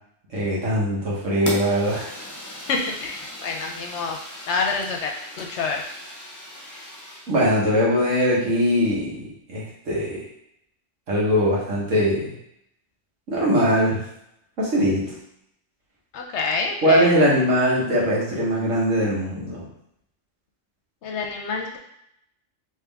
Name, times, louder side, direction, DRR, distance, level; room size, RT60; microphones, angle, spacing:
voice 1, 0.3-2.1 7.3-10.2 11.1-12.3 13.3-14.0 14.6-15.1 16.8-19.6, equal, 75° right, -6 dB, 1.7 m, -21 dB
Fire, 1.5-7.4, left 1 dB, 20° left, 0.5 m, -37 dB
voice 2, 2.7-4.2 4.5-5.1 5.4-5.8 16.1-17.1 21.0-21.8, left 4 dB, 65° left, 2 dB, 0.8 m, -27 dB
3.5 x 3.1 x 3.4 m, 0.76 s
omnidirectional pair, 1.3 m